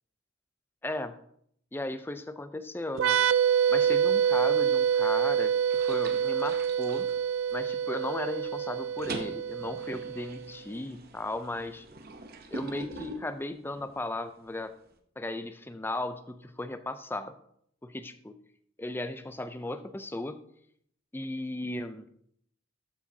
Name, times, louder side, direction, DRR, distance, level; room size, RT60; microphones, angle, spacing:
voice 1, 0.8-1.1 1.7-3.2 3.7-7.1 7.5-11.9 12.5-14.7 15.2-17.3 17.8-18.3 18.8-20.4 21.1-22.1, left 2 dB, 10° left, 11 dB, 0.4 m, -36 dB
sound 1, 2.9-10.5, right 8 dB, 70° right, 0.3 m, -26 dB
sound 2, 4.9-5.3 5.7-7.8 8.2-8.5 8.7-14.0, right 2 dB, 50° right, 0.8 m, -43 dB
12.5 x 7.4 x 2.8 m, 0.69 s
head